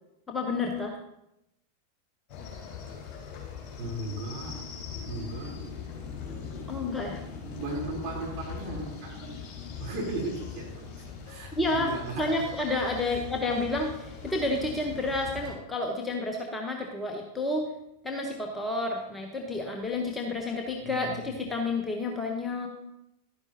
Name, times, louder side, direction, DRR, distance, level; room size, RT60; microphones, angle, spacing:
voice 1, 0.3-1.0 6.7-7.2 11.6-11.9 12.2-17.7 18.0-22.7, left 2 dB, 10° left, 2 dB, 1.0 m, -30 dB
sound 1, 2.3-15.5, left 6 dB, 30° left, 3.3 m, -41 dB
voice 2, 3.8-4.6 5.1-5.6 7.5-9.4 9.8-12.5 13.0-13.2 20.8-21.4, right 2 dB, 40° right, -3 dB, 3.7 m, -37 dB
11.5 x 9.6 x 2.9 m, 0.84 s
figure-of-eight pair, 90°, 0 cm